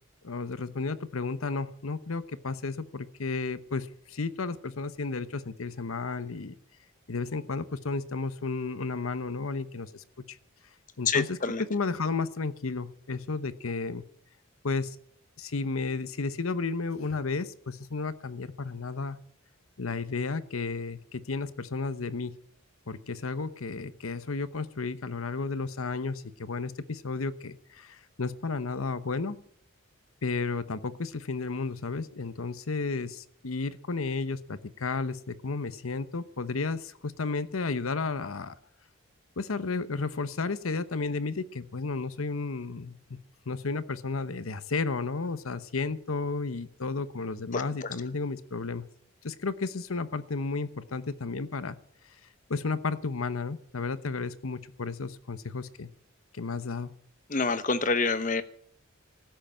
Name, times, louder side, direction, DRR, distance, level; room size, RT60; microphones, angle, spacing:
voice 1, 0.2-6.6 7.1-10.0 11.0-11.4 11.7-14.0 14.6-15.0 15.4-19.2 19.8-22.3 22.9-29.4 30.2-38.5 39.4-43.2 43.5-48.9 49.2-51.8 52.5-55.9 56.3-56.9, left 4 dB, 90° left, 14 dB, 0.9 m, -33 dB
voice 2, 11.1-11.6 47.5-47.9 57.3-58.4, left 4 dB, 40° left, 12 dB, 0.9 m, -27 dB
15.0 x 7.9 x 8.8 m, 0.63 s
head